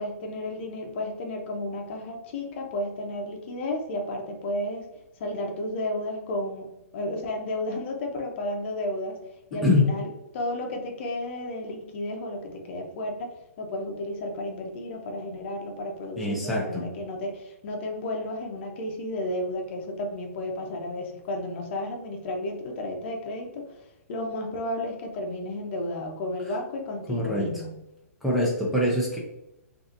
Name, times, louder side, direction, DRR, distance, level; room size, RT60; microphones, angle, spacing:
voice 1, 0.0-4.9 5.2-6.7 6.9-9.2 9.5-10.1 10.3-23.7 24.1-27.7, left 1 dB, 45° left, 2 dB, 0.7 m, -32 dB
voice 2, 16.2-16.8 27.1-27.5 28.2-29.2, left 2 dB, ahead, -6 dB, 0.5 m, -24 dB
3.9 x 2.7 x 2.6 m, 0.91 s
hypercardioid pair, 150°, 8 cm